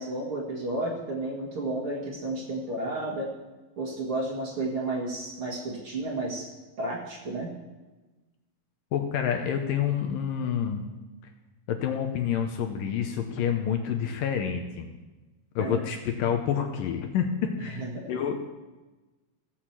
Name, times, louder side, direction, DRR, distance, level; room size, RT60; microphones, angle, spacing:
voice 1, 0.0-3.3 3.8-6.5 6.8-7.5 15.6-15.8 17.8-18.1, right 2 dB, 40° right, -3 dB, 2.3 m, -32 dB
voice 2, 8.9-10.9 11.7-14.9 15.6-17.3 17.6-17.8 18.1-18.3, left 8 dB, 75° left, 4 dB, 2.4 m, -28 dB
16.5 x 6.5 x 7.5 m, 1.2 s
omnidirectional pair, 4.4 m